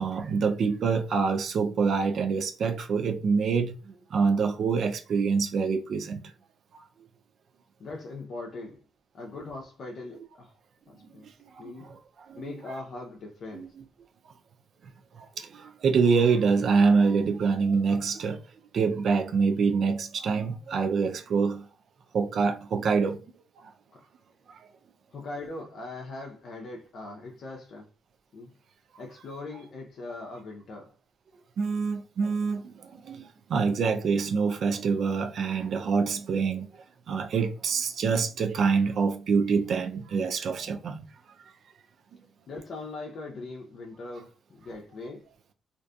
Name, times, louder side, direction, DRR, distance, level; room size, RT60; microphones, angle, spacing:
voice 1, 0.0-3.7 4.1-6.2 6.7-6.8 11.4-12.0 12.3-12.5 13.5-13.7 15.2-18.4 18.7-21.7 22.1-23.2 23.6-23.7 24.5-24.6 31.6-36.7 37.1-41.0, right 5 dB, 65° right, 0.3 m, -26 dB
voice 2, 7.8-8.8 9.1-10.6 10.9-11.3 11.6-11.9 12.3-13.7 23.9-24.0 25.1-27.9 28.3-28.5 29.0-30.9 42.5-45.3, left 2 dB, 65° left, 0.5 m, -40 dB
2.5 x 2.4 x 2.2 m
cardioid pair, 75°, 0 cm